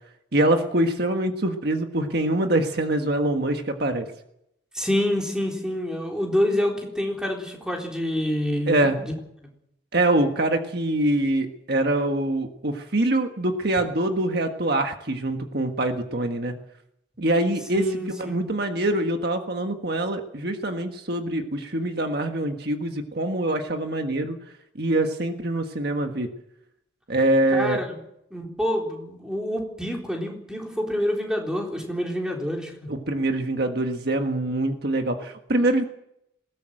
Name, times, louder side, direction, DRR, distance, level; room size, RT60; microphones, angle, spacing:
voice 1, 0.3-4.1 8.7-9.0 9.9-16.6 17.2-24.4 24.8-26.3 27.1-27.8 32.9-35.8, right 1 dB, 55° right, 5 dB, 1.5 m, -24 dB
voice 2, 4.7-9.1 17.7-18.4 27.5-28.0 28.3-32.9, left 1 dB, 5° right, 0 dB, 3.9 m, -27 dB
20.5 x 17.5 x 7.8 m, 0.79 s
head